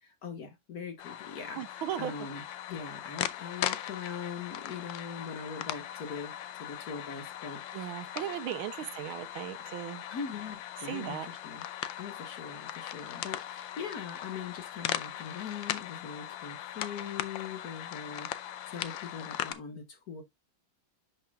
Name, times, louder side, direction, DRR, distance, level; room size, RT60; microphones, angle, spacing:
voice 1, 0.0-2.4 2.7-8.3 8.8-8.9 10.1-11.6 12.0-20.2, left 6 dB, 50° left, 1.8 m, -42 dB
sound 1, 1.0-19.5, left 12 dB, 75° left, 1.3 m, -39 dB
voice 2, 1.6-2.1 7.7-10.0 10.8-11.3, right 12 dB, 85° right, 1.5 m, -37 dB
11.5 x 5.6 x 2.3 m
omnidirectional pair, 2.2 m